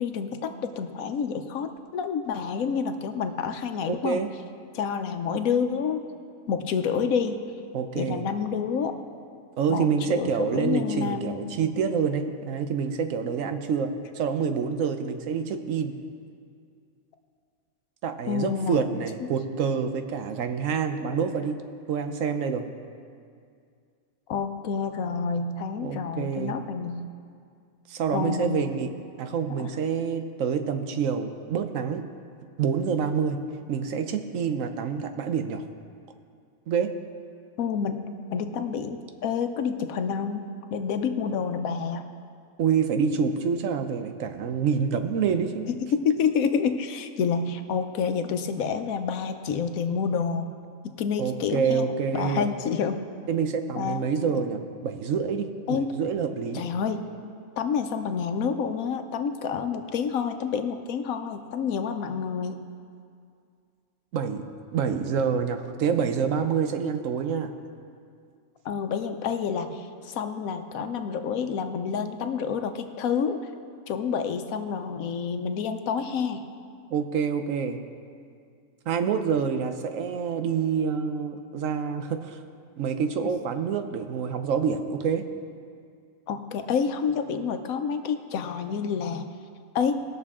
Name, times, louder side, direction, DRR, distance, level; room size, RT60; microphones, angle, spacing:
voice 1, 0.0-4.2 4.7-6.0 6.5-7.4 7.9-8.9 9.7-11.5 18.2-18.8 24.3-27.1 28.1-28.7 29.6-29.7 37.6-40.5 40.7-42.1 45.7-50.5 51.0-51.9 52.1-53.0 53.8-54.1 55.7-56.0 56.5-57.1 57.6-62.6 68.6-73.4 73.9-76.4 86.3-89.3 89.7-90.0, left 6 dB, 80° left, 7 dB, 1.2 m, -28 dB
voice 2, 3.9-4.3 7.7-8.2 9.6-15.9 18.0-21.6 21.9-22.7 25.8-26.5 27.9-28.9 29.2-32.0 32.6-33.4 33.7-35.6 36.7-36.9 42.6-45.7 51.2-52.5 53.3-56.6 64.1-64.5 64.7-67.5 76.9-77.8 78.9-82.4 82.8-85.2, right 6 dB, 70° right, 8 dB, 1.1 m, -27 dB
19.5 x 6.7 x 3.6 m, 2.3 s
omnidirectional pair, 1.4 m